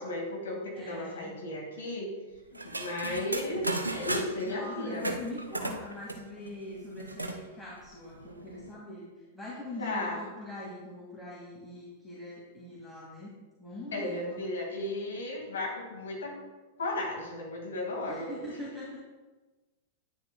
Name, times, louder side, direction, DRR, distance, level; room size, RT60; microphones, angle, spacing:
voice 1, 0.0-2.1 2.5-5.1 9.8-10.2 13.9-16.4 16.8-18.3, left 1 dB, 70° left, 0 dB, 2.0 m, -35 dB
voice 2, 0.7-1.3 4.4-9.1 9.3-13.3 13.6-14.4 18.1-19.0, left 1 dB, 10° left, -7 dB, 2.2 m, -42 dB
sound 1, 2.5-4.5 5.0-7.4 7.8-7.9 8.1-8.7, right 2 dB, 90° right, 0.7 m, -35 dB
9.9 x 9.4 x 2.3 m, 1.2 s
figure-of-eight pair, 95°, 0 cm